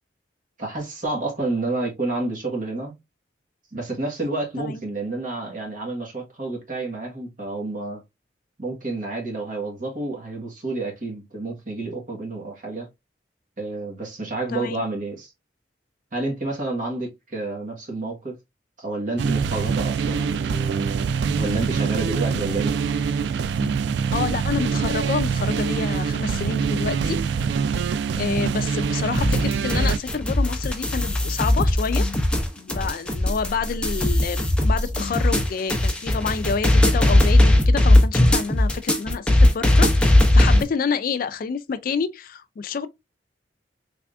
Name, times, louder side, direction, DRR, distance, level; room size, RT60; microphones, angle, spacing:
voice 1, 0.6-2.9 3.7-8.0 8.6-12.9 13.6-15.3 16.1-18.3 18.8-21.0 21.4-22.8, right 2 dB, 50° right, 1.3 m, -29 dB
voice 2, 14.5-14.8 22.3-22.5 23.6-23.8 24.1-27.2 27.8-32.1 32.6-42.9, left 5 dB, 55° left, 0.4 m, -28 dB
sound 1, 19.2-30.0, right 6 dB, 70° right, 0.3 m, -24 dB
sound 2, 29.1-40.6, left 1 dB, 5° left, 0.6 m, -18 dB
3.4 x 3.4 x 2.4 m
head